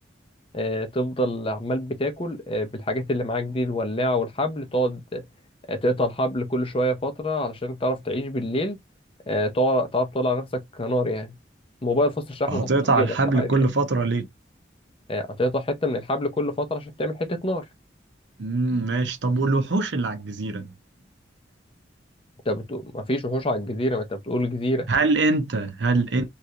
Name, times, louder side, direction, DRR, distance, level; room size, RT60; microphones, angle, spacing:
voice 1, 0.5-5.2 5.7-8.8 9.3-11.3 11.8-13.5 15.1-17.6 22.5-24.9, equal, 30° left, 0.6 m, -26 dB
voice 2, 12.5-14.2 18.4-20.7 24.9-26.2, right 3 dB, 75° right, 0.8 m, -23 dB
3.2 x 2.5 x 2.7 m
head